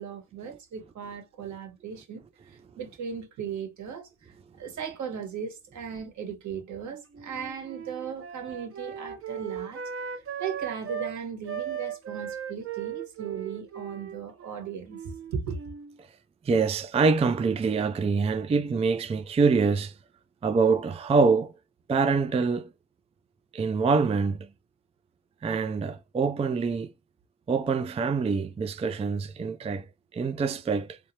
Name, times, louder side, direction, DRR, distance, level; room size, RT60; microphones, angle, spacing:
voice 1, 0.0-9.8 10.1-15.6, right 7 dB, 70° right, 1.7 m, -37 dB
Wind instrument woodwind instrument, 7.1-11.2 11.5-15.9, right 8 dB, 45° right, 0.8 m, -37 dB
voice 2, 16.4-20.0 20.4-21.5 21.9-22.7 23.5-24.5 25.4-26.9 27.5-29.9 30.1-31.0, right 4 dB, 20° right, 0.4 m, -25 dB
3.3 x 3.1 x 2.8 m
cardioid pair, 90°, 30 cm